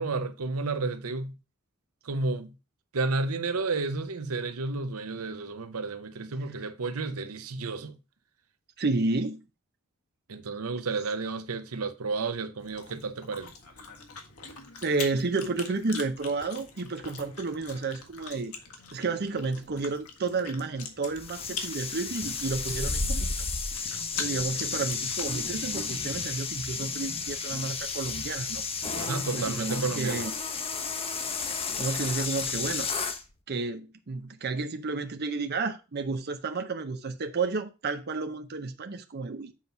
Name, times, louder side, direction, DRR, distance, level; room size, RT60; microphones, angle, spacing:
voice 1, 0.0-1.3 2.0-2.5 2.9-8.0 10.3-13.5 28.9-30.2, right 3 dB, 85° right, 0.8 m, -31 dB
voice 2, 8.8-9.4 14.8-18.5 18.9-23.3 24.1-28.6 29.3-30.3 31.5-32.9 33.5-39.5, right 3 dB, 50° right, 0.7 m, -31 dB
Chewing mastication, 12.6-25.4, left 5 dB, 90° left, 1.6 m, -43 dB
sound 1, 21.2-33.2, left 4 dB, 25° left, 0.9 m, -32 dB
7.4 x 4.1 x 5.8 m
head